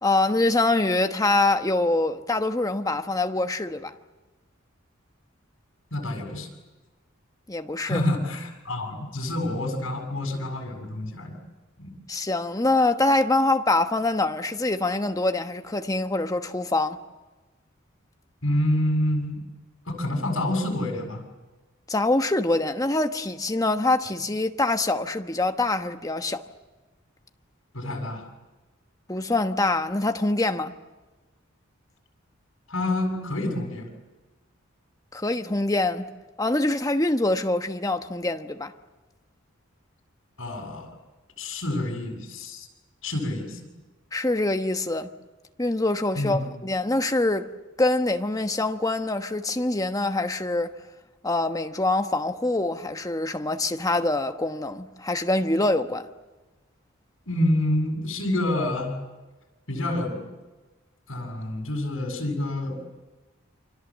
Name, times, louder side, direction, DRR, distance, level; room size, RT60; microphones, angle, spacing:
voice 1, 0.0-3.9 7.5-8.0 12.1-17.0 21.9-26.4 29.1-30.7 35.1-36.1 36.4-38.7 44.1-45.1 45.6-47.5 47.8-50.7 51.2-56.1, left 2 dB, 15° left, 1.1 m, -24 dB
voice 2, 5.9-6.5 7.8-11.4 11.8-11.9 18.4-19.4 19.9-21.3 27.7-28.2 32.7-33.9 40.4-40.9 41.4-42.7 43.0-43.6 46.1-46.4 57.3-59.0 59.7-60.2 61.1-62.8, left 1 dB, 70° left, 7.2 m, -27 dB
29.5 x 25.5 x 7.4 m
head